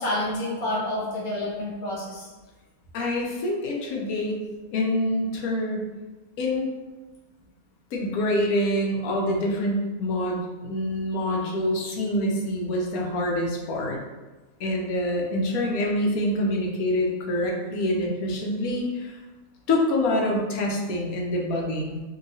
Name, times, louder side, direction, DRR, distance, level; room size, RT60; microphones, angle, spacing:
voice 1, 0.0-2.3, left 1 dB, 55° left, -6 dB, 1.2 m, -29 dB
voice 2, 2.9-4.4 4.7-5.9 6.4-6.7 7.9-14.0 14.6-19.2 19.7-22.0, left 1 dB, 80° left, -1 dB, 1.1 m, -26 dB
2.9 x 2.7 x 2.6 m, 1.2 s
omnidirectional pair, 1.5 m